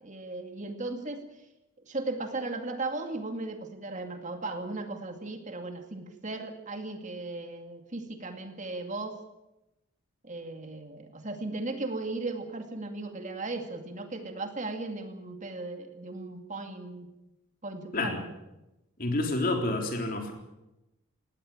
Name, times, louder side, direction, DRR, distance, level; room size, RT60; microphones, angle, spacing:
voice 1, 0.0-1.2 1.8-9.2 10.2-17.1 17.6-18.3, right 2 dB, 35° right, 6 dB, 2.2 m, -36 dB
voice 2, 19.0-20.3, left 2 dB, 45° left, 3 dB, 3.7 m, -29 dB
19.0 x 17.0 x 8.7 m, 0.95 s
head